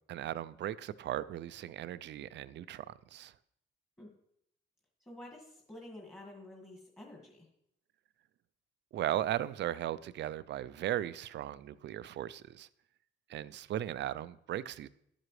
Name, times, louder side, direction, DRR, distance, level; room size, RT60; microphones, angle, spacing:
voice 1, 0.1-3.3 8.9-12.7 13.3-14.9, right 12 dB, 65° right, 0.5 m, -37 dB
voice 2, 5.1-7.5, left 1 dB, 15° left, 1.9 m, -50 dB
11.5 x 7.6 x 3.2 m
cardioid pair, 90°, 20 cm